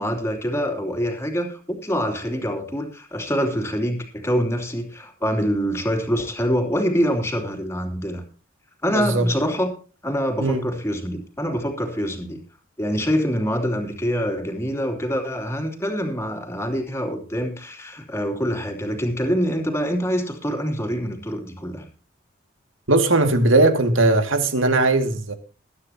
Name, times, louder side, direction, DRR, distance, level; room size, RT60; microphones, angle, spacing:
voice 1, 0.0-8.2 8.8-9.7 10.0-12.4 12.8-21.9, equal, 15° left, 3.1 m, -25 dB
voice 2, 8.9-9.3 10.4-10.7 22.9-25.3, right 2 dB, 85° right, 2.3 m, -19 dB
21.0 x 9.9 x 2.9 m
head